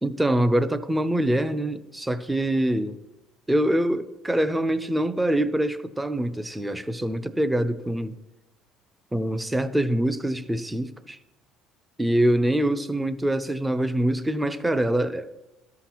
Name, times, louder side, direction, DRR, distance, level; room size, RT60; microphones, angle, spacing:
voice 1, 0.0-3.0 3.5-8.1 9.1-11.2 12.0-15.3, right 1 dB, 5° right, 0.4 m, -24 dB
13.0 x 5.7 x 2.9 m
cardioid pair, 120°, 0 cm